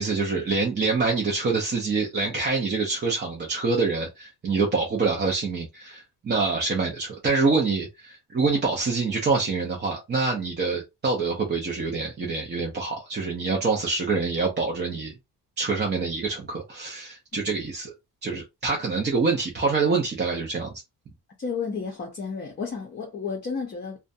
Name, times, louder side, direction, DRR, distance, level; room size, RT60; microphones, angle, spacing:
voice 1, 0.0-15.1 15.6-17.9 18.2-20.8, right 4 dB, 25° right, 0.5 m, -26 dB
voice 2, 21.4-24.0, left 5 dB, 30° left, 0.5 m, -32 dB
2.5 x 2.2 x 2.5 m
wide cardioid pair, 165°, 40 cm